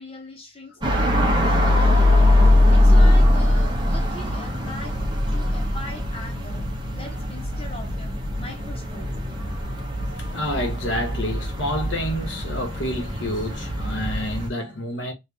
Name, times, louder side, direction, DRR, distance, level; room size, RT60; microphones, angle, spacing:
voice 1, 0.0-1.2 1.5-2.2 2.7-5.0 5.3-9.1, left 1 dB, 30° left, 1.0 m, -40 dB
sound 1, 0.8-14.5, left 1 dB, 25° right, 0.9 m, -21 dB
voice 2, 1.1-2.0 2.5-3.0 5.4-5.7 7.1-7.2 9.4-15.1, equal, 75° left, 1.3 m, -30 dB
3.2 x 2.5 x 3.7 m
head